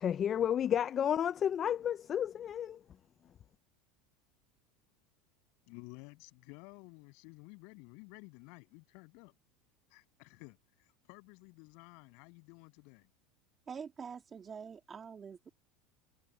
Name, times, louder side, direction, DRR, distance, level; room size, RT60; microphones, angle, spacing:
voice 1, 0.0-2.8, left 9 dB, 30° left, 0.3 m, -31 dB
voice 2, 5.7-9.3 9.9-13.1, left 33 dB, 65° left, 7.9 m, -53 dB
voice 3, 13.7-15.5, right 6 dB, 25° right, 2.2 m, -45 dB
supercardioid pair, 130°, 0 cm